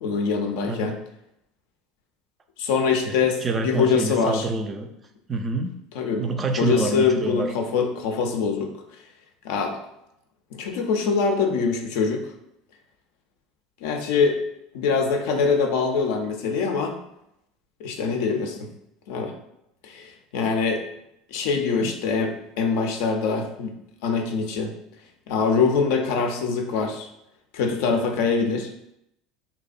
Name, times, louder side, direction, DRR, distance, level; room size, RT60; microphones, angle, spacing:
voice 1, 0.0-0.9 2.6-4.4 6.0-6.3 6.6-8.7 9.4-9.8 10.5-12.2 13.8-14.4 14.7-17.0 17.8-18.7 19.1-19.3 19.8-20.8 21.3-23.7 24.0-24.7 25.3-27.1 27.5-28.7, left 5 dB, 70° left, 3 dB, 0.4 m, -23 dB
voice 2, 3.4-4.9 5.3-5.8 6.1-7.5 21.8-21.9, right 3 dB, 30° right, 4 dB, 0.3 m, -27 dB
2.5 x 2.1 x 2.4 m, 0.80 s
hypercardioid pair, 80°, 0 cm